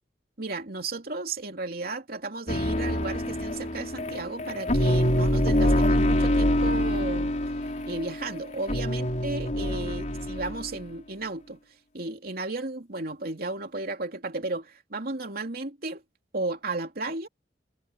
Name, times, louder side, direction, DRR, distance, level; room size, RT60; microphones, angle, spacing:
voice 1, 0.4-7.3 7.9-11.6 11.9-16.0 16.3-17.3, right 2 dB, 55° right, 3.1 m, -34 dB
sound 1, 2.5-10.7, left 1 dB, 45° left, 4.2 m, -25 dB
head